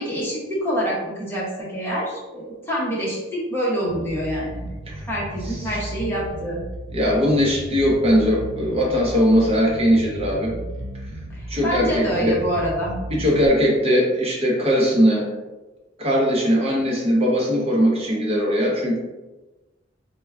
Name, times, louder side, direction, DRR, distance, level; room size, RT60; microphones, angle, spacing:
voice 1, 0.0-4.8 5.1-6.6 11.3-13.0, equal, 15° left, -6 dB, 0.7 m, -26 dB
Bass guitar, 3.9-13.5, right 1 dB, 75° right, 0.4 m, -34 dB
voice 2, 6.9-10.5 11.5-12.4 13.1-15.3 16.0-19.0, equal, 30° right, -3 dB, 0.7 m, -20 dB
4.5 x 2.1 x 2.3 m, 1.1 s
head